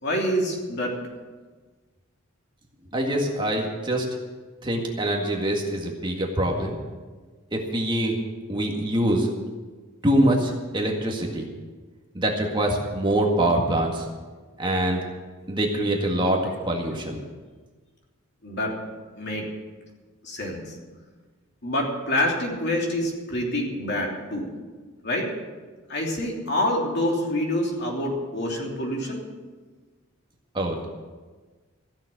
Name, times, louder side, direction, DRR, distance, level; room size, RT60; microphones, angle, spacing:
voice 1, 0.0-1.0 18.4-18.7 19.2-19.5 20.2-20.7 21.6-24.5 25.0-25.3 25.9-29.3, left 1 dB, 55° left, -1 dB, 3.1 m, -26 dB
voice 2, 2.9-4.1 4.6-6.8 7.5-8.2 8.5-9.3 10.0-11.5 12.1-14.1 14.6-15.0 15.5-17.2 30.5-30.9, right 1 dB, 20° right, 0 dB, 1.8 m, -24 dB
15.5 x 7.3 x 9.3 m, 1.4 s
head